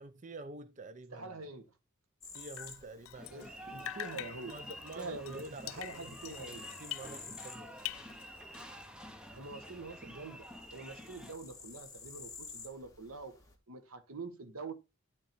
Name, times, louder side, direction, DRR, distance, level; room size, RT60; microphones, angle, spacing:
voice 1, 0.0-1.4 2.3-3.5 4.5-7.7, right 2 dB, 35° right, 0.6 m, -48 dB
voice 2, 1.1-1.7 3.3-4.5 4.9-6.7 9.3-10.4 10.7-13.4 13.7-14.7, right 3 dB, 90° right, 1.5 m, -45 dB
sound 1, 2.2-13.5, left 4 dB, 15° left, 2.0 m, -53 dB
Drip, 2.3-3.5 3.8-7.5 7.8-8.8, left 15 dB, 70° left, 0.3 m, -45 dB
sound 2, 3.2-11.3, equal, 5° right, 1.0 m, -49 dB
11.0 x 3.8 x 4.4 m
head